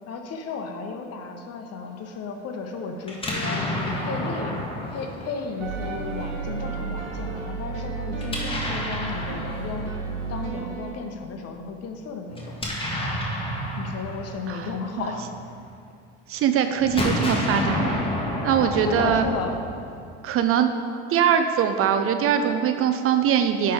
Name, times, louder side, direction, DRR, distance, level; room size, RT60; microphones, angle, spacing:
voice 1, 0.1-3.6 4.0-4.6 4.9-9.9 10.3-12.6 13.8-15.3 18.6-19.6, left 4 dB, 45° left, 4 dB, 1.0 m, -34 dB
Explosion, 3.0-6.1 8.2-10.4 12.3-15.7 16.8-20.2, left 1 dB, 15° left, 1.5 m, -30 dB
sound 1, 5.6-10.9, right 5 dB, 75° right, 1.2 m, -32 dB
voice 2, 16.3-17.9 18.4-19.3 20.2-20.7 21.1-23.7, right 8 dB, 40° right, 8 dB, 0.5 m, -22 dB
10.0 x 3.4 x 4.8 m, 2.3 s
hypercardioid pair, 75°, 35 cm